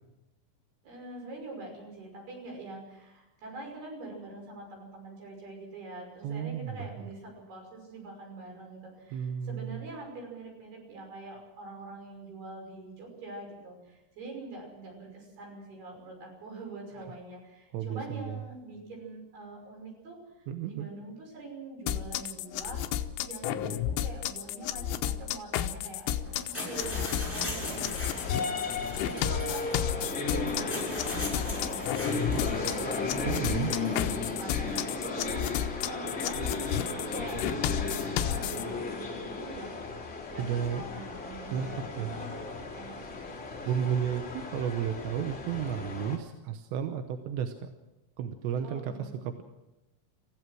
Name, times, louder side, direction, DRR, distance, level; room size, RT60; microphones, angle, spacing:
voice 1, 0.8-32.9 33.6-39.8 40.3-42.4 42.7-43.2 48.6-49.2, right 2 dB, 55° right, 1 dB, 7.7 m, -44 dB
voice 2, 6.2-6.9 9.1-9.8 17.7-18.4 20.5-20.9 32.1-32.4 33.3-33.7 40.4-40.9 41.5-41.7 42.0-42.1 43.7-47.7 48.2-49.4, right 8 dB, 75° right, 6 dB, 2.9 m, -33 dB
sound 1, 21.9-38.6, left 11 dB, 80° left, 3.2 m, -32 dB
sound 2, 26.2-34.8, left 1 dB, ahead, 6.4 m, -40 dB
sound 3, 27.5-46.2, left 3 dB, 20° left, 2.4 m, -35 dB
28.0 x 15.5 x 6.2 m, 1.0 s
omnidirectional pair, 5.7 m